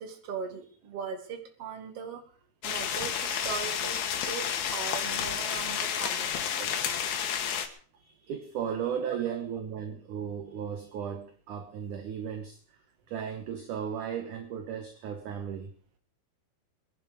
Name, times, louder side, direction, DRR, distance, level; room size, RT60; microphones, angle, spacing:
voice 1, 0.0-2.2 2.6-6.8 9.1-9.4, right 6 dB, 45° right, 6 dB, 2.7 m, -39 dB
sound 1, 2.6-7.7, left 8 dB, 70° left, 3.2 m, -31 dB
voice 2, 8.0-12.8 13.1-15.7, right 8 dB, 65° right, 7 dB, 2.4 m, -35 dB
23.0 x 11.0 x 5.1 m, 0.44 s
omnidirectional pair, 4.5 m